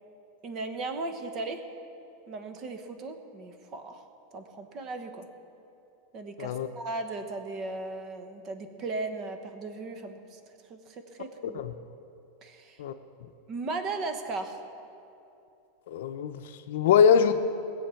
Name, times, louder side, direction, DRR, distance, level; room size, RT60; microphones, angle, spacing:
voice 1, 0.4-1.6 2.3-4.1 4.3-5.3 6.1-10.4 10.7-11.6 12.4-12.8 13.5-14.6, right 3 dB, 30° right, 7 dB, 1.2 m, -37 dB
voice 2, 15.9-17.3, left 7 dB, 75° left, 8 dB, 0.6 m, -23 dB
20.5 x 7.7 x 5.8 m, 2.7 s
supercardioid pair, 160°, 0 cm